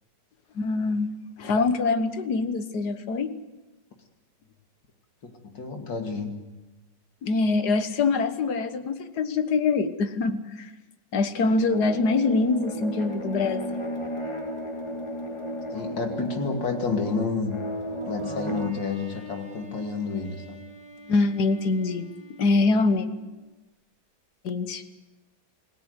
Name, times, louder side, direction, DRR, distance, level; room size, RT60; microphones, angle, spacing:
voice 1, 0.6-1.1 1.4-3.3 7.2-10.7 11.1-13.8 21.1-22.1 22.4-23.1 24.4-24.8, left 3 dB, 65° left, 10 dB, 1.8 m, -24 dB
voice 2, 5.2-6.3 15.7-17.6 18.1-20.6, left 4 dB, 85° left, 4 dB, 3.1 m, -30 dB
sound 1, 11.7-18.7, equal, 15° left, 1.8 m, -34 dB
Bowed string instrument, 18.5-23.5, equal, 5° right, 4.3 m, -47 dB
27.5 x 17.0 x 8.1 m, 1.1 s
omnidirectional pair, 1.9 m